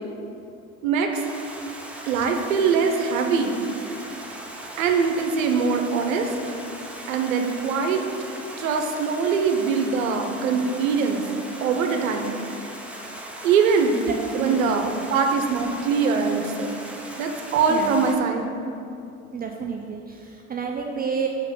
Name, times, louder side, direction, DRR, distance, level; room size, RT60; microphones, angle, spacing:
voice 1, 0.8-1.2 2.1-3.6 4.8-6.3 7.1-8.0 8.6-11.2 11.6-12.4 13.4-14.0 14.4-16.8 17.2-18.5, right 5 dB, 75° right, 4 dB, 0.9 m, -22 dB
Stream, 1.1-18.2, right 1 dB, 5° right, 0.9 m, -39 dB
voice 2, 14.1-14.9 17.7-18.0 19.3-21.3, right 6 dB, 25° right, 2 dB, 0.5 m, -30 dB
6.5 x 5.6 x 5.3 m, 2.6 s
hypercardioid pair, 75°, 41 cm